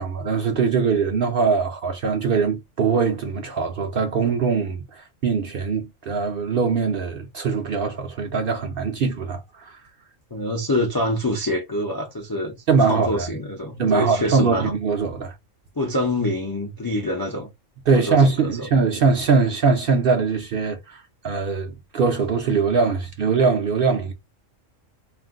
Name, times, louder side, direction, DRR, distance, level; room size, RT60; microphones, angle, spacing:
voice 1, 0.0-9.7 12.7-13.3 13.8-15.3 17.9-24.1, right 5 dB, 60° right, 0.6 m, -22 dB
voice 2, 10.3-12.6 12.9-14.7 15.8-17.5 17.9-18.7, left 1 dB, 35° left, 0.3 m, -25 dB
2.5 x 2.1 x 3.5 m
omnidirectional pair, 1.3 m